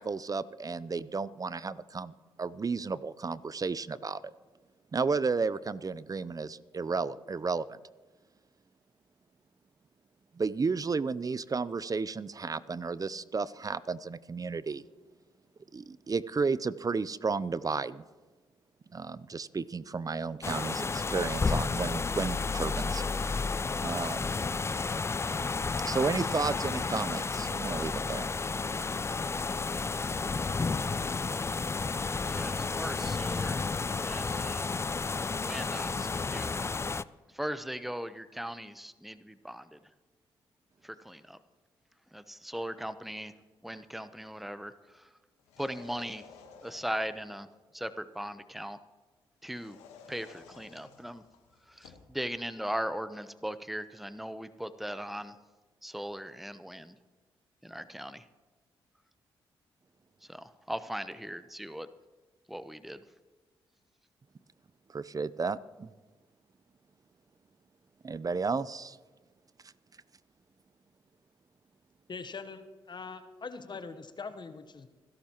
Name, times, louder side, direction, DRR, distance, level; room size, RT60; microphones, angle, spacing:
voice 1, 0.0-2.1 2.4-4.3 4.9-7.8 10.3-14.8 15.7-18.0 18.9-23.4 23.8-24.4 25.8-28.3 64.9-65.9 68.0-69.0, right 4 dB, 35° right, 17 dB, 0.5 m, -33 dB
sound 1, 20.4-37.0, left 4 dB, 25° left, 0.4 m, -32 dB
voice 2, 32.2-33.7 34.0-34.7 35.4-36.9 37.3-39.8 40.8-41.4 42.1-43.3 43.6-45.1 45.6-46.3 46.6-47.5 47.7-48.8 49.4-49.8 50.1-51.2 51.7-55.4 55.8-57.0 57.6-58.3 60.2-61.9 62.5-63.0, equal, ahead, 12 dB, 0.8 m, -39 dB
sound 2, 45.4-47.3 49.5-52.1, left 6 dB, 90° left, 1.3 m, -54 dB
voice 3, 72.1-74.9, left 4 dB, 45° left, 9 dB, 1.0 m, -42 dB
26.0 x 11.5 x 3.0 m, 1.3 s
supercardioid pair, 50°, 11 cm